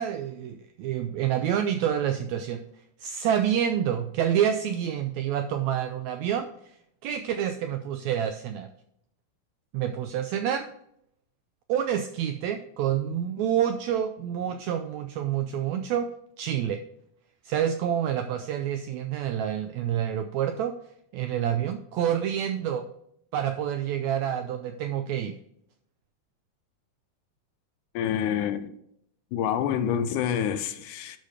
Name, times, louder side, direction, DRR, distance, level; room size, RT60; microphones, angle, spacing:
voice 1, 0.0-2.6 3.0-6.5 7.0-8.7 9.7-10.7 11.7-16.1 16.4-16.8 17.4-20.7 21.1-22.9 23.3-25.3, right 9 dB, 85° right, 1.6 m, -28 dB
voice 2, 28.0-28.7 29.3-31.2, left 9 dB, 85° left, 2.1 m, -27 dB
11.5 x 4.1 x 5.0 m
omnidirectional pair, 3.7 m